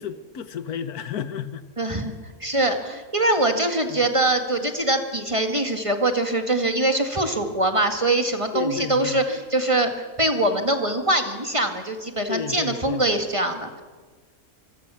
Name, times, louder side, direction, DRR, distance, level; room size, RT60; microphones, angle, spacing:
voice 1, 0.0-1.7 3.9-4.0 8.5-9.2 12.3-13.0, left 8 dB, 85° left, 1.6 m, -32 dB
voice 2, 1.8-2.1 2.4-13.8, right 1 dB, 20° right, 1.9 m, -23 dB
25.5 x 23.0 x 7.0 m
omnidirectional pair, 1.6 m